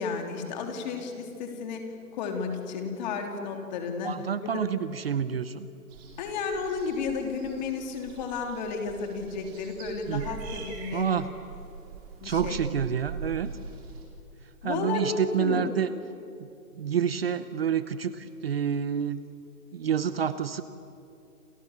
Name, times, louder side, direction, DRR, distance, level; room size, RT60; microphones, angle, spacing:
voice 1, 0.0-4.1 4.4-4.6 6.2-11.1 12.2-12.6 14.6-15.7, left 5 dB, 30° left, 4 dB, 3.3 m, -32 dB
voice 2, 4.0-5.7 10.1-10.2 10.9-11.3 12.2-13.5 14.6-15.9 16.4-16.5 16.8-19.2 19.7-20.6, right 8 dB, 40° right, 13 dB, 0.9 m, -28 dB
sound 1, 5.9-14.0, right 5 dB, 25° right, 4.5 m, -42 dB
29.0 x 27.5 x 7.3 m, 2.7 s
hypercardioid pair, 160°, 45 cm